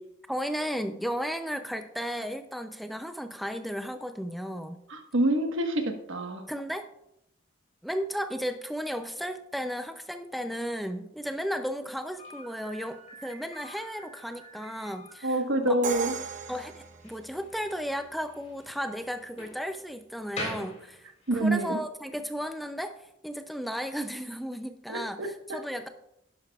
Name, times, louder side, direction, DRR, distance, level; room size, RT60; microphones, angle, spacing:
voice 1, 0.3-4.8 6.5-6.9 7.8-15.8 16.5-25.9, equal, ahead, 8 dB, 0.4 m, -34 dB
voice 2, 4.9-5.8 6.1-6.4 15.2-16.1 21.3-21.8 24.9-25.3, right 1 dB, 75° right, 5 dB, 1.3 m, -26 dB
Slam, 12.2-21.5, left 1 dB, 35° left, 3.6 m, -45 dB
Crash cymbal, 15.8-17.7, right 5 dB, 40° right, 0.8 m, -36 dB
11.5 x 10.5 x 2.3 m, 0.81 s
head